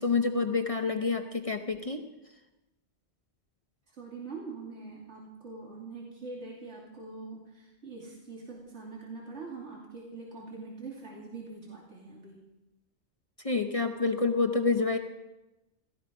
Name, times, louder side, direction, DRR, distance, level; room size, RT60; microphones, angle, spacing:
voice 1, 0.0-2.0 13.4-15.0, left 4 dB, 35° left, 4 dB, 0.9 m, -28 dB
voice 2, 4.0-12.4, right 3 dB, 75° right, -3 dB, 3.0 m, -43 dB
17.0 x 14.5 x 5.2 m, 1.0 s
omnidirectional pair, 1.2 m